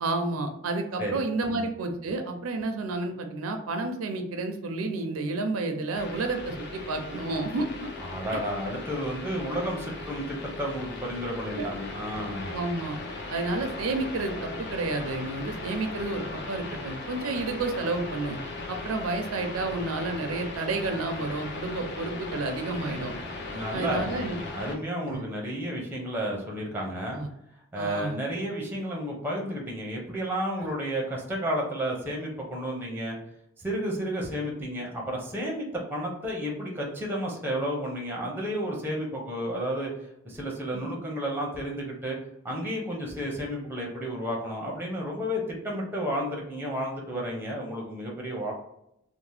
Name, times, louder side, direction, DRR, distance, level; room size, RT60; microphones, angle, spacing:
voice 1, 0.0-7.9 11.6-11.7 12.5-13.0 13.3-18.4 18.7-23.1 23.7-24.4 25.1-25.2 27.1-27.3 27.8-28.2 30.6-30.7 40.7-40.8, right 3 dB, 90° right, 5 dB, 0.5 m, -30 dB
sound 1, 5.9-24.7, left 3 dB, 50° left, 0.5 m, -38 dB
voice 2, 8.0-12.5 23.5-27.2 27.7-33.2 33.6-39.9 40.2-42.2 42.4-48.5, equal, 10° right, -2 dB, 0.6 m, -32 dB
2.7 x 2.0 x 3.2 m, 0.79 s
head